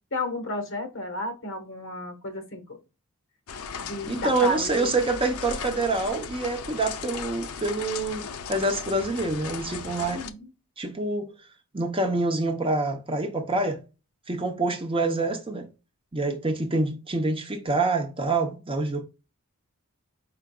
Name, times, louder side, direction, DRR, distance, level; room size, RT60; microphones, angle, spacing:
voice 1, 0.1-2.8 3.8-4.9 10.0-10.5, left 1 dB, 55° left, 1.2 m, -32 dB
sound 1, 3.5-10.3, left 6 dB, 70° left, 0.5 m, -37 dB
voice 2, 4.1-10.2 10.8-11.3 11.7-13.8 14.3-15.7 16.1-19.0, right 2 dB, 25° right, 0.7 m, -26 dB
4.8 x 4.7 x 2.3 m
head